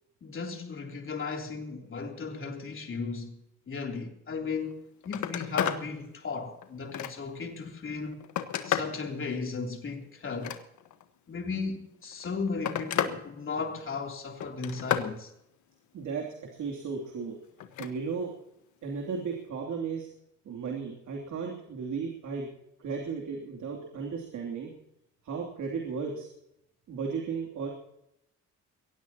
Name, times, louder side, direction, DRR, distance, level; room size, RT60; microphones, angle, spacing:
voice 1, 0.2-3.4 3.7-8.3 8.6-10.6 11.3-15.3, left 4 dB, 45° left, 3.3 m, -36 dB
Telephone, 4.6-4.7 5.0-5.8 6.3-7.4 8.0-9.0 10.2-11.0 12.0-13.2 13.5-14.0 14.4-15.1 17.6-17.9 19.3-19.5, left 10 dB, 75° left, 1.4 m, -32 dB
voice 2, 15.9-17.4 17.8-18.3 18.8-20.1 20.4-22.5 22.8-24.7 25.2-26.3 26.9-27.7, right 5 dB, 75° right, 3.0 m, -35 dB
22.0 x 17.5 x 2.9 m
cardioid pair, 90°, 30 cm